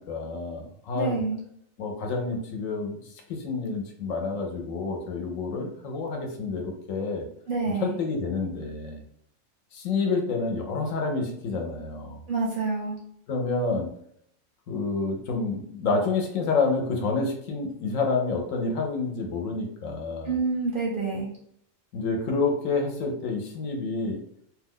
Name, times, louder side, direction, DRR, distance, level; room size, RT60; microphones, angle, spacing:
voice 1, 0.0-1.2 1.8-7.2 7.8-9.0 9.7-12.2 13.3-13.9 14.7-20.3 21.9-24.2, left 4 dB, 75° left, 2 dB, 1.0 m, -28 dB
voice 2, 0.9-1.4 7.5-8.0 12.3-13.0 20.2-21.3, right 4 dB, 55° right, -3 dB, 0.6 m, -27 dB
2.5 x 2.2 x 3.5 m, 0.69 s
omnidirectional pair, 1.5 m